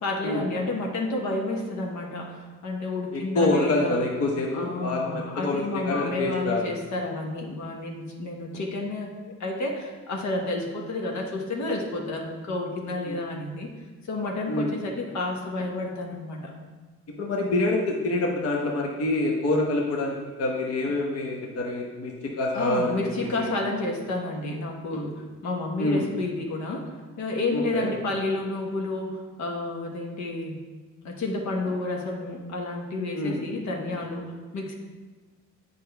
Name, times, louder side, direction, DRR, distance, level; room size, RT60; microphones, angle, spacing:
voice 1, 0.0-4.2 4.5-9.1 9.4-13.7 14.1-16.5 22.5-26.9 27.2-30.5 31.0-34.7, left 2 dB, 70° left, 0 dB, 1.2 m, -30 dB
voice 2, 3.1-6.6 13.1-13.2 14.5-14.7 17.2-23.0 23.4-23.5 25.8-26.1 27.5-27.9 33.1-33.4, left 2 dB, 50° left, 0 dB, 1.0 m, -26 dB
7.6 x 5.4 x 3.4 m, 1.4 s
cardioid pair, 90°, 30 cm